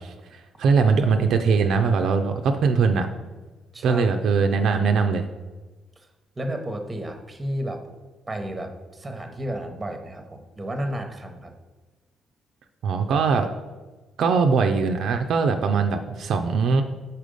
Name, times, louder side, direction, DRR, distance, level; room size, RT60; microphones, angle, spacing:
voice 1, 0.0-3.1 3.8-5.3 12.8-13.5 14.2-16.8, right 5 dB, 70° right, 6 dB, 0.4 m, -21 dB
voice 2, 3.7-4.1 6.0-6.1 6.4-7.8 8.3-11.5, right 1 dB, 20° right, 5 dB, 0.8 m, -32 dB
5.0 x 4.3 x 5.1 m, 1.2 s
cardioid pair, 90°, 0 cm